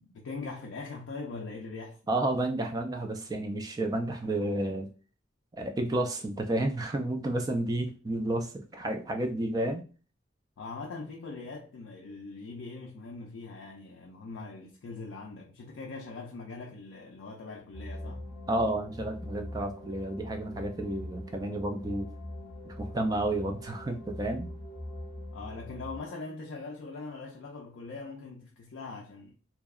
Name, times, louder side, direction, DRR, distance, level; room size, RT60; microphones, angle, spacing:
voice 1, 0.0-2.0 10.6-18.3 25.3-29.3, left 3 dB, 65° left, 0.4 m, -41 dB
voice 2, 2.1-4.9 5.5-9.8 18.5-22.1 22.7-24.5, right 1 dB, 20° right, 0.3 m, -31 dB
sound 1, 17.7-26.0, left 1 dB, 20° left, 0.6 m, -42 dB
2.7 x 2.0 x 2.3 m
head